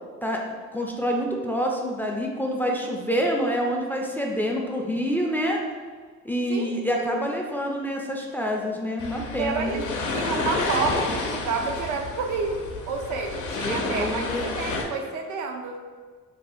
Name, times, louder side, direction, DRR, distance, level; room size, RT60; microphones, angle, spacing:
voice 1, 0.7-5.6 6.2-9.8 13.5-14.6, equal, 5° left, 0 dB, 0.4 m, -27 dB
voice 2, 6.5-7.1 9.4-9.8 10.1-15.8, right 4 dB, 75° right, 3 dB, 0.5 m, -30 dB
sound 1, 9.0-14.8, left 3 dB, 80° left, 0.6 m, -30 dB
2.7 x 2.3 x 4.1 m, 1.6 s
cardioid pair, 90°, 30 cm